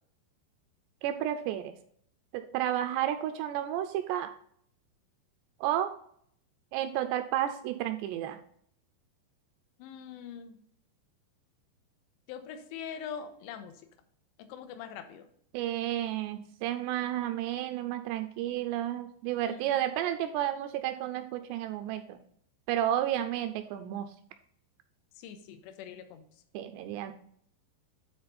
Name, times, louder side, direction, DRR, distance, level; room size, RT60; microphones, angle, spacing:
voice 1, 1.0-1.7 2.3-4.3 5.6-5.9 6.7-8.4 15.5-22.2 22.7-24.1 26.5-27.1, right 12 dB, 85° right, 8 dB, 2.5 m, -31 dB
voice 2, 9.8-10.6 12.3-13.9 14.4-15.3 19.5-19.7 25.2-26.4, left 8 dB, 80° left, 8 dB, 2.7 m, -43 dB
10.5 x 4.1 x 4.1 m, 0.65 s
omnidirectional pair, 5.2 m